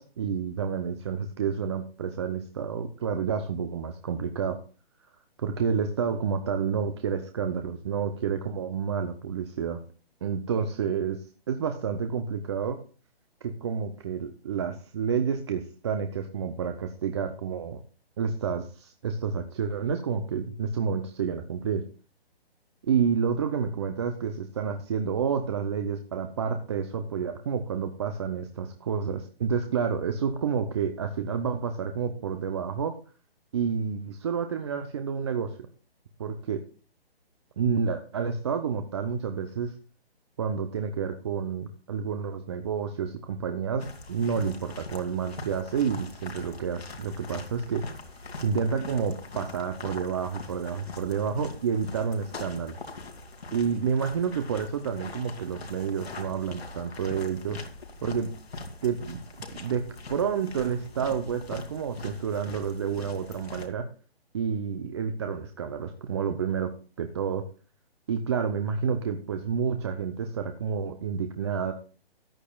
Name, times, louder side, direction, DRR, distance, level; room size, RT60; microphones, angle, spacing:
voice 1, 0.0-4.6 5.4-9.8 10.2-11.2 11.5-12.8 13.4-17.8 18.2-21.8 22.8-32.9 33.5-35.5 36.2-36.6 37.6-39.8 40.4-47.8 48.4-52.7 53.5-57.6 58.0-58.3 58.8-59.2 59.6-63.9 64.3-66.7 67.0-67.4 68.1-71.7, right 6 dB, 25° right, 7 dB, 0.6 m, -29 dB
sound 1, 43.8-63.7, left 3 dB, 80° left, 2.6 m, -42 dB
13.5 x 9.9 x 2.3 m, 0.37 s
hypercardioid pair, 155°, 31 cm